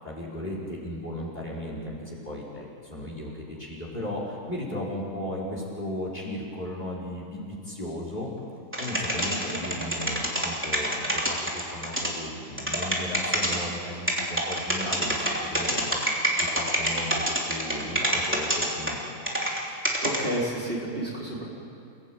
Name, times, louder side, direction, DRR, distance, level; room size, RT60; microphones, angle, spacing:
voice 1, 0.0-8.3 8.8-17.1 17.4-19.0, left 1 dB, 20° left, -4 dB, 5.4 m, -36 dB
sound 1, 8.7-12.1 12.6-13.6 14.1-19.6 19.9-20.2, equal, 5° right, 3.3 m, -26 dB
voice 2, 9.2-9.5 19.7-21.5, right 1 dB, 25° right, -5 dB, 4.3 m, -32 dB
29.0 x 18.0 x 9.1 m, 2.5 s
omnidirectional pair, 2.1 m